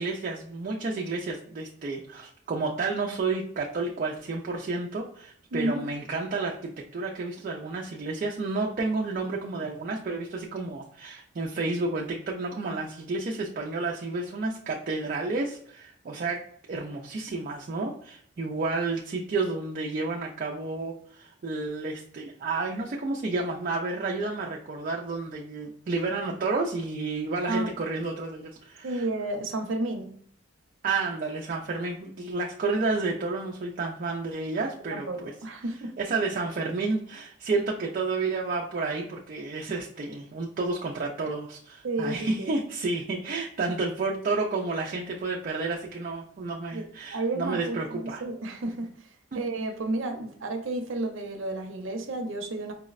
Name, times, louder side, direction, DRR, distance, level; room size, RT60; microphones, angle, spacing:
voice 1, 0.0-16.4 16.7-29.1 30.8-35.3 36.0-48.2 49.3-49.4, right 3 dB, 45° right, -1 dB, 0.3 m, -31 dB
voice 2, 5.5-5.8 27.5-27.7 28.8-30.1 34.9-35.9 41.8-42.5 46.7-48.9 49.3-52.7, right 2 dB, 90° right, 5 dB, 0.6 m, -31 dB
4.7 x 2.0 x 2.4 m, 0.62 s
head